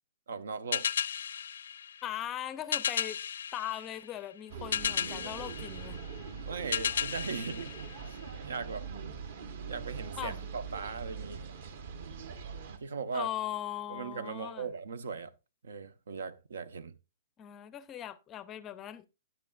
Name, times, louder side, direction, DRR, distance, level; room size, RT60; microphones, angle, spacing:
voice 1, 0.3-0.9 6.4-7.7 8.1-8.9 9.6-11.5 12.8-13.3 13.9-15.3 15.6-17.0, right 5 dB, 90° right, 0.9 m, -39 dB
sound 1, 0.7-8.6, left 8 dB, 80° left, 0.5 m, -35 dB
voice 2, 2.0-3.2 3.5-6.0 10.2-10.5 13.1-14.7 17.4-19.1, left 11 dB, 15° left, 0.4 m, -39 dB
sound 2, 4.5-12.8, right 6 dB, 50° right, 1.1 m, -42 dB
13.0 x 9.0 x 2.4 m
hypercardioid pair, 170°, 0 cm